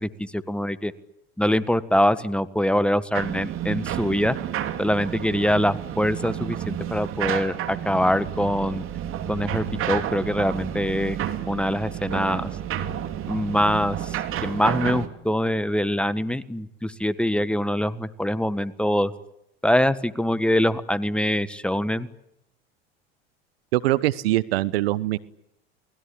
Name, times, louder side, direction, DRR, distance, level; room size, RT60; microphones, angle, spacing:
voice 1, 0.0-0.9 1.4-4.4 4.8-8.8 9.3-11.2 11.5-12.5 13.3-14.1 14.4-19.1 19.6-22.1, equal, 5° left, 13 dB, 1.5 m, -24 dB
sound 1, 3.1-15.1, right 10 dB, 45° right, 2.9 m, -30 dB
voice 2, 23.7-25.2, right 16 dB, 70° right, 18 dB, 1.1 m, -23 dB
29.5 x 20.0 x 8.7 m, 0.81 s
hypercardioid pair, 95°, 31 cm